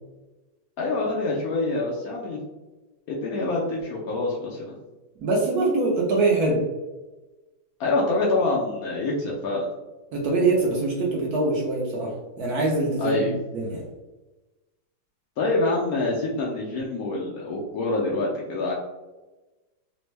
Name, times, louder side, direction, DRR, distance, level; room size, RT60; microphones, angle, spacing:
voice 1, 0.8-2.4 3.1-4.7 7.8-9.6 13.0-13.3 15.4-18.7, left 2 dB, 75° left, -3 dB, 0.8 m, -26 dB
voice 2, 5.2-6.6 10.1-13.8, right 2 dB, 70° right, -2 dB, 0.9 m, -23 dB
3.4 x 2.1 x 3.1 m, 1.1 s
omnidirectional pair, 2.1 m